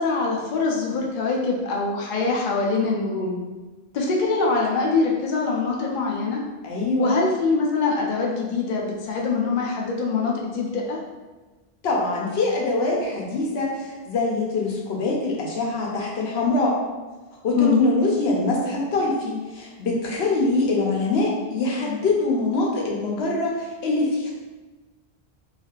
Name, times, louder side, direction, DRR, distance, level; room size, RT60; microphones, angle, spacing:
voice 1, 0.0-3.4 3.9-6.4 7.0-11.0 17.6-17.8, left 4 dB, 60° left, -1 dB, 0.6 m, -23 dB
voice 2, 6.6-7.1 11.8-16.8 17.4-24.3, left 2 dB, 85° left, -2 dB, 0.9 m, -24 dB
3.2 x 2.4 x 2.3 m, 1.2 s
omnidirectional pair, 1.0 m